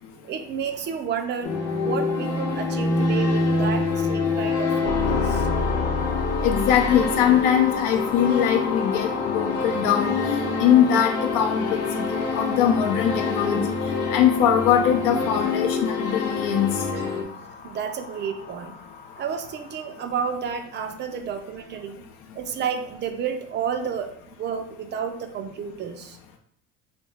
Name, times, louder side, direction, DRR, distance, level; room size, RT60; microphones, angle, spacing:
voice 1, 0.2-1.5 1.8-5.5 14.0-14.1 16.9-18.8 19.2-22.0 22.3-26.2, right 7 dB, 35° right, 7 dB, 0.4 m, -31 dB
sound 1, 1.4-17.2, left 4 dB, 50° left, 0.8 m, -26 dB
sound 2, 4.8-19.9, left 4 dB, 25° left, 0.4 m, -33 dB
voice 2, 6.4-12.0 12.3-13.6 14.1-16.7, left 9 dB, 80° left, 3 dB, 0.6 m, -21 dB
2.9 x 2.7 x 4.3 m, 0.66 s
cardioid pair, 140°, 33 cm